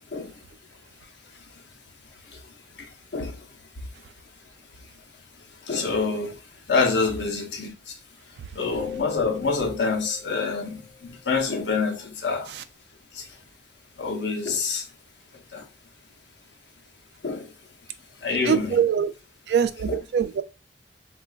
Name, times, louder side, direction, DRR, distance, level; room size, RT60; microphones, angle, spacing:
voice 1, 3.1-3.5 5.6-6.4 6.7-8.0 8.5-12.5 13.1-13.3 14.0-14.9 15.5-15.7 17.2-17.5 18.2-18.8 19.9-20.0, left 4 dB, 80° left, 0.7 m, -27 dB
sound 1, 8.7-11.4, left 8 dB, 20° right, 1.8 m, -40 dB
voice 2, 18.5-19.1 19.5-20.4, right 7 dB, 70° right, 0.3 m, -23 dB
3.8 x 2.3 x 2.3 m
head